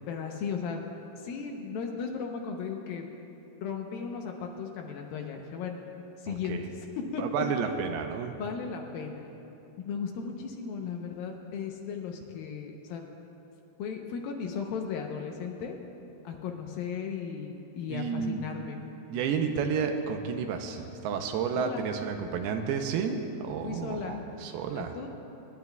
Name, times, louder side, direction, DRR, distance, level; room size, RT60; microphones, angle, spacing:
voice 1, 0.1-0.8 1.2-3.1 3.6-5.8 6.2-6.6 7.1-7.4 8.4-9.3 9.8-13.0 13.8-15.8 16.2-18.8 21.6-21.9 23.6-24.2 24.8-25.1, left 6 dB, 75° left, 2 dB, 2.4 m, -36 dB
voice 2, 6.3-6.6 7.2-8.4 17.9-18.4 19.1-25.0, right 6 dB, 85° right, 5 dB, 2.6 m, -31 dB
25.0 x 11.0 x 2.3 m, 3.0 s
omnidirectional pair, 4.6 m